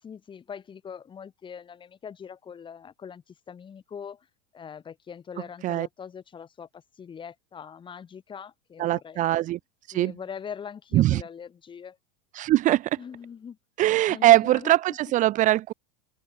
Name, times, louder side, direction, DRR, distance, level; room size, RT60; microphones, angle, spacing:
voice 1, 0.0-4.3 4.5-9.5 9.9-12.0 13.0-13.6 13.9-14.8, left 7 dB, 25° left, 3.3 m, -42 dB
voice 2, 8.8-9.6 9.9-10.1 10.9-11.2 12.3-12.9 13.8-15.7, right 15 dB, 40° right, 0.8 m, -21 dB
supercardioid pair, 115°, 20 cm